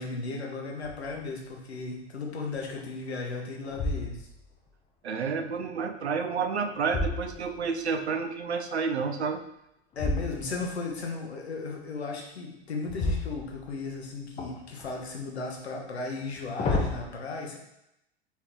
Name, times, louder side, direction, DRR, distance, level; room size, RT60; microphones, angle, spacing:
voice 1, 0.0-4.3 10.0-17.6, left 3 dB, 80° left, 0 dB, 1.1 m, -35 dB
sound 1, 0.8-1.3 1.8-1.9 2.5-3.1 3.6-4.5 6.2-7.9 9.9-10.8 12.8-14.0 14.4-15.1 16.2-17.0, left 2 dB, 20° left, 0.7 m, -32 dB
voice 2, 5.0-9.4, right 5 dB, 85° right, 7 dB, 0.6 m, -30 dB
4.3 x 3.7 x 3.0 m, 0.83 s
figure-of-eight pair, 90°, 32 cm